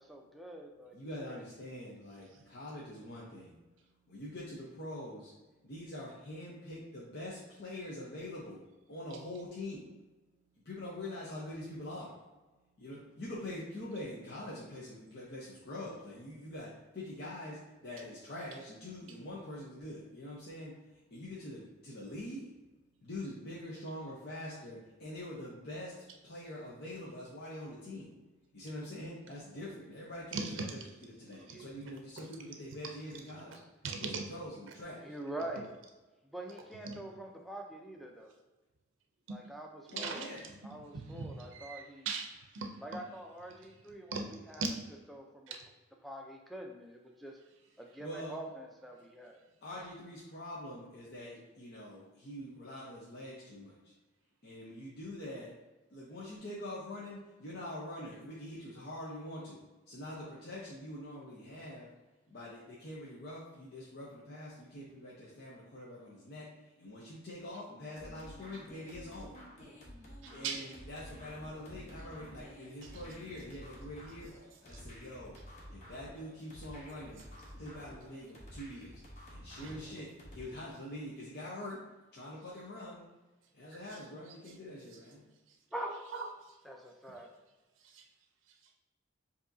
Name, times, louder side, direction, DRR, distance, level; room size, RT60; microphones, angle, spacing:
voice 1, 0.0-1.0 1.3-1.4 31.4-31.7 35.0-35.7 36.3-38.3 39.3-40.2 40.6-42.1 42.8-44.7 45.1-45.5 46.0-47.4 47.8-49.4 85.7-86.0 86.6-87.3, right 1 dB, ahead, 1 dB, 0.5 m, -45 dB
voice 2, 0.9-3.6 4.1-5.3 5.6-8.6 8.9-9.9 10.6-12.1 12.8-22.5 23.0-26.0 26.2-28.1 28.5-33.6 34.0-35.1 39.9-40.4 48.0-48.3 49.6-53.9 54.4-55.5 55.9-61.9 62.3-69.4 70.3-74.3 74.6-75.3 75.7-77.2 77.6-79.0 79.3-81.8 82.1-83.0 83.5-85.3, left 1 dB, 55° left, -6 dB, 0.8 m, -44 dB
voice 3, 30.3-30.8 31.5-31.6 32.2-32.3 33.8-34.3 36.8-37.0 39.3-39.4 39.9-40.3 40.9-43.0 44.1-44.7 45.5-45.6 70.2-70.6 74.7-74.8 79.6-79.8 83.9-84.0 85.5-85.6 86.1-86.6 87.0-87.1 87.8-88.1, right 4 dB, 75° right, 3 dB, 0.5 m, -40 dB
sound 1, 68.0-80.4, equal, 35° left, 1.1 m, -51 dB
7.0 x 2.8 x 2.6 m, 1.2 s
head